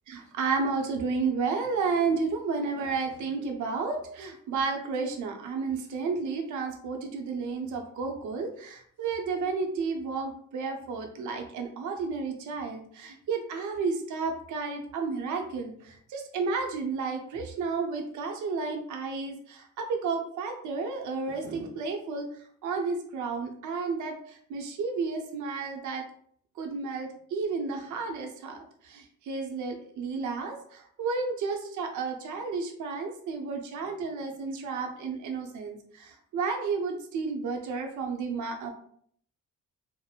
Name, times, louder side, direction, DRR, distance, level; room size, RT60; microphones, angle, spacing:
voice 1, 0.1-22.3 22.6-24.2 24.5-26.0 26.6-38.7, right 4 dB, 75° right, 3 dB, 0.6 m, -32 dB
2.8 x 2.0 x 2.3 m, 0.62 s
cardioid pair, 90°, 30 cm